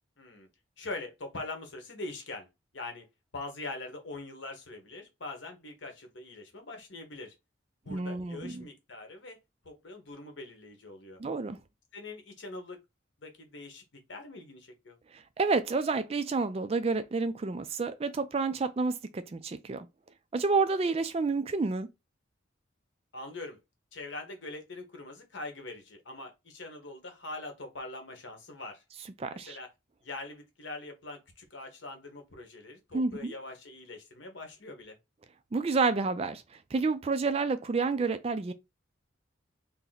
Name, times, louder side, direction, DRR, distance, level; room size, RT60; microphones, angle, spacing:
voice 1, 0.2-0.5 0.8-3.1 3.3-7.3 7.8-9.4 9.6-11.2 11.9-12.8 13.2-15.0 23.1-23.6 23.9-28.8 29.3-29.7 30.0-35.0, left 2 dB, 70° left, 1.1 m, -43 dB
voice 2, 7.9-8.6 11.2-11.6 15.1-19.9 20.3-21.9 29.2-29.6 32.9-33.4 35.5-36.4 36.7-38.5, right 4 dB, 30° right, 0.3 m, -29 dB
2.8 x 2.7 x 4.0 m
head